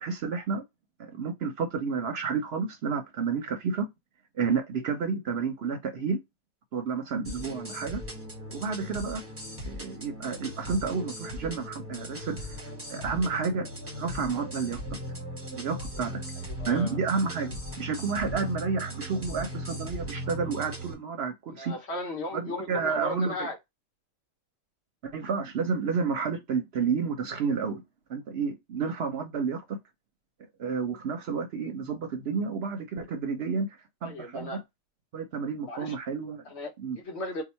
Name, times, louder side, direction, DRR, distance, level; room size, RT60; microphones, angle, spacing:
voice 1, 0.0-0.6 1.0-3.9 4.4-6.2 6.7-8.0 8.5-9.2 9.6-12.6 12.9-13.7 14.0-14.8 15.5-16.2 16.7-21.8 22.3-23.5 25.0-27.8 28.1-29.8 30.6-33.7 34.0-34.6 35.1-36.4 36.8-37.0, right 5 dB, 60° right, 0.8 m, -30 dB
sound 1, 7.2-20.9, equal, 10° right, 0.8 m, -38 dB
voice 2, 16.6-16.9 21.6-23.6 34.0-34.6 35.7-35.9 36.5-37.4, left 2 dB, 60° left, 1.2 m, -36 dB
2.9 x 2.2 x 4.1 m
omnidirectional pair, 1.4 m